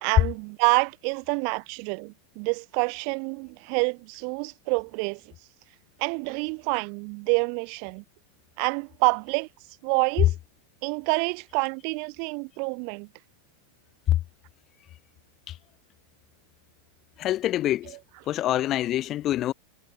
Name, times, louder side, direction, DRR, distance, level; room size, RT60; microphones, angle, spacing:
voice 1, 0.0-5.2 6.0-8.0 8.6-9.5 9.8-10.4 10.8-13.1, right 40 dB or more, 45° right, 1.6 m, -27 dB
voice 2, 17.2-18.0 18.3-19.5, left 13 dB, 35° left, 2.7 m, -25 dB
figure-of-eight pair, 90°, 0 cm